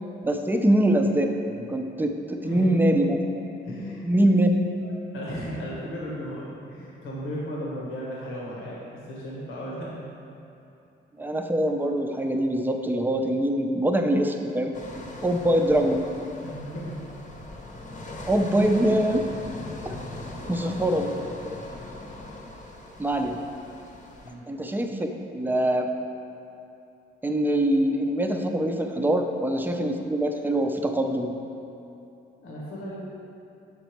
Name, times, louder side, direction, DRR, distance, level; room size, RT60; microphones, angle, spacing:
voice 1, 0.2-3.2 4.0-4.5 11.2-14.7 15.2-16.0 18.3-19.2 19.8-20.0 20.5-21.1 21.4-21.5 23.0-23.4 24.5-25.1 25.3-25.9 27.2-31.3, right 1 dB, 10° right, 4 dB, 0.5 m, -23 dB
voice 2, 3.6-4.1 4.8-10.0 16.4-17.0 18.4-18.7 20.3-20.5 24.2-24.4 32.4-33.0, equal, 90° left, -5 dB, 1.3 m, -36 dB
sound 1, 14.7-24.3, left 1 dB, 40° left, 0.9 m, -40 dB
6.6 x 4.0 x 4.6 m, 2.8 s
cardioid pair, 90°, 20 cm